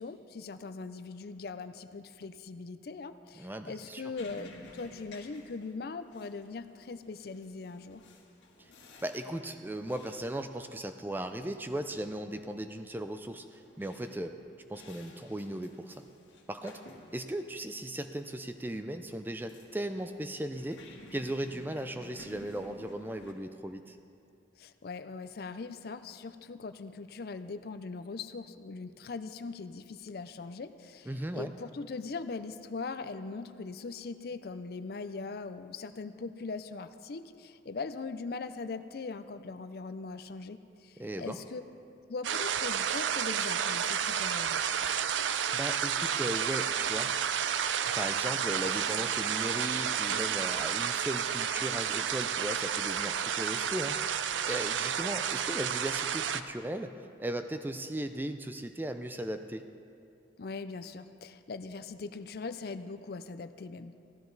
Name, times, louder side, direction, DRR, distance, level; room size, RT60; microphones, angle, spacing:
voice 1, 0.0-8.0 24.6-41.6 42.1-44.6 60.4-64.0, left 4 dB, 55° left, 10 dB, 0.4 m, -41 dB
voice 2, 3.4-4.1 8.6-8.7 9.0-14.3 14.7-16.0 16.5-16.8 17.1-20.8 21.1-24.0 31.1-31.5 41.0-41.4 45.5-47.1 47.9-54.2 54.5-59.6, right 1 dB, 10° right, 8 dB, 0.4 m, -37 dB
sound 1, 4.2-23.3, left 2 dB, 80° left, 1.6 m, -55 dB
sound 2, 42.2-56.4, right 8 dB, 80° right, 0.4 m, -31 dB
15.0 x 12.5 x 4.0 m, 2.5 s
head